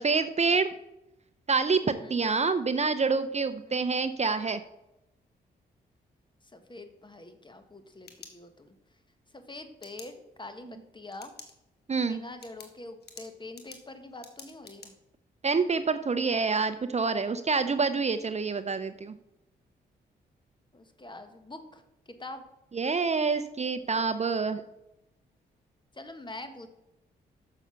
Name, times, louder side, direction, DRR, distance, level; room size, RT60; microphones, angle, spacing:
voice 1, 0.0-0.7 1.5-4.6 11.9-12.2 15.4-19.1 22.7-24.6, right 4 dB, 35° right, 11 dB, 0.6 m, -27 dB
voice 2, 1.8-2.2 3.6-3.8 6.5-8.7 9.3-10.1 10.4-11.3 12.0-14.9 20.7-22.4 25.9-26.7, left 2 dB, 25° left, 8 dB, 1.4 m, -45 dB
sound 1, 7.7-8.9 9.8-10.1 11.1-11.5 11.9-12.0 12.4-14.9, left 5 dB, 60° left, 1.6 m, -49 dB
7.1 x 6.6 x 5.8 m, 0.89 s
supercardioid pair, 50°, 19 cm